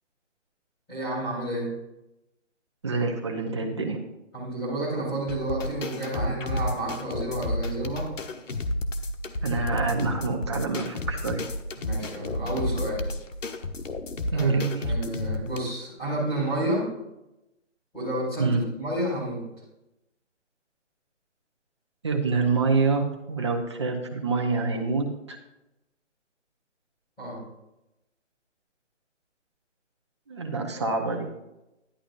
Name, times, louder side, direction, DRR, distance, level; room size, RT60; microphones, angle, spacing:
voice 1, 0.9-1.7 4.3-8.1 11.8-13.1 14.3-14.6 14.8-16.9 17.9-19.4 27.2-27.4, right 1 dB, 10° left, -10 dB, 3.1 m, -30 dB
voice 2, 2.8-4.0 9.4-11.4 14.3-14.9 18.4-18.6 22.0-25.4 30.3-31.3, right 4 dB, 25° right, 2 dB, 0.8 m, -26 dB
sound 1, 5.3-15.6, left 1 dB, 80° left, 1.2 m, -31 dB
11.5 x 11.5 x 2.6 m, 0.92 s
hypercardioid pair, 165°, 37 cm